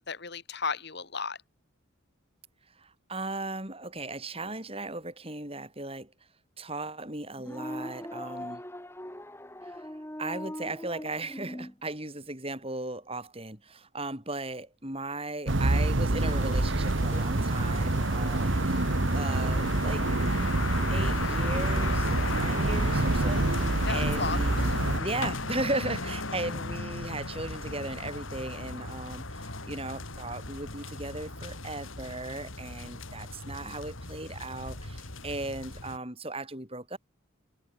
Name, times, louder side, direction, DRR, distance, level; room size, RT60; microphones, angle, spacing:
voice 1, 0.0-1.4 22.6-22.7 23.8-24.8 29.4-29.7, left 4 dB, 50° left, 2.2 m, -35 dB
voice 2, 2.8-6.1 6.6-8.6 9.6-9.9 10.2-18.9 19.1-20.0 20.9-24.6 25.0-37.0, right 2 dB, 25° right, 6.2 m, -37 dB
sound 1, 7.4-11.7, left 1 dB, 10° left, 3.1 m, -40 dB
sound 2, 15.5-25.0, right 2 dB, 60° right, 1.3 m, -27 dB
sound 3, 16.2-36.0, left 3 dB, 65° left, 5.0 m, -37 dB
head